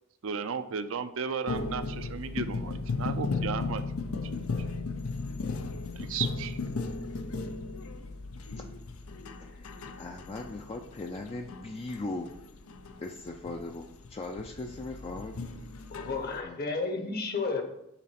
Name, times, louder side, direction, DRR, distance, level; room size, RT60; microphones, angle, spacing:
voice 1, 0.2-4.2 5.9-6.6, right 6 dB, 70° right, 10 dB, 0.5 m, -35 dB
sound 1, 1.5-16.4, left 3 dB, 85° left, 0.6 m, -36 dB
voice 2, 9.4-12.3 13.0-15.3 16.4-16.6, left 2 dB, 30° left, 3 dB, 0.4 m, -39 dB
voice 3, 15.9-17.6, left 4 dB, 50° left, 5 dB, 1.0 m, -32 dB
6.0 x 4.0 x 5.8 m, 0.80 s
head